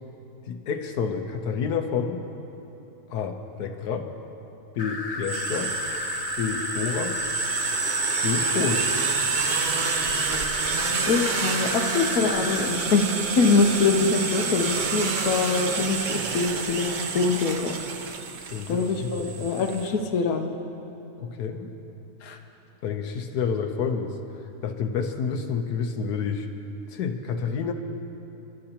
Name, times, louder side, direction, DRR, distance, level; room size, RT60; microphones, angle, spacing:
voice 1, 0.5-2.2 3.1-4.1 4.8-5.7 6.3-7.2 8.2-8.9 18.5-19.5 21.2-21.7 22.8-24.1 24.6-26.5 26.9-27.7, left 6 dB, 85° left, 5 dB, 1.4 m, -29 dB
sound 1, 4.8-12.7, left 3 dB, 40° left, 0.6 m, -33 dB
sound 2, 5.2-19.9, right 5 dB, 50° right, 0.5 m, -28 dB
voice 2, 11.1-16.9 17.1-17.8 18.7-20.5 22.2-22.4, left 4 dB, 70° left, 3 dB, 1.3 m, -24 dB
28.5 x 12.5 x 2.9 m, 3.0 s
omnidirectional pair, 1.7 m